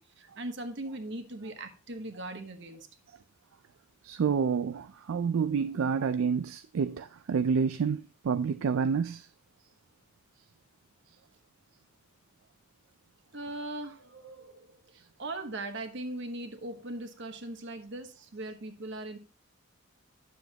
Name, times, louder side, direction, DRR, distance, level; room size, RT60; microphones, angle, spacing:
voice 1, 0.0-2.9 13.3-19.2, right 2 dB, 60° right, 1.1 m, -40 dB
voice 2, 4.0-9.3, right 6 dB, 75° right, 0.4 m, -28 dB
9.5 x 7.2 x 2.9 m
head